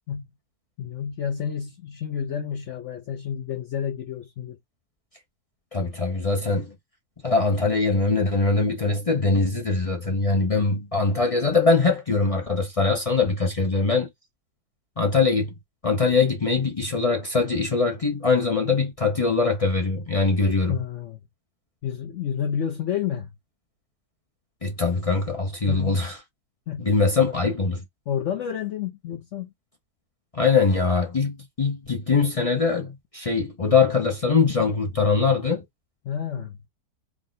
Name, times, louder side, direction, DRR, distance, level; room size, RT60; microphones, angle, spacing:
voice 1, 0.8-4.6 20.7-21.2 21.8-23.3 25.7-26.0 26.7-26.9 28.1-29.5 36.0-36.6, left 8 dB, 65° left, 0.8 m, -30 dB
voice 2, 5.7-6.7 7.2-14.1 15.0-15.5 15.8-20.7 24.6-26.1 26.8-27.8 30.3-35.6, left 4 dB, 45° left, 0.4 m, -22 dB
3.7 x 2.2 x 3.9 m
omnidirectional pair, 1.8 m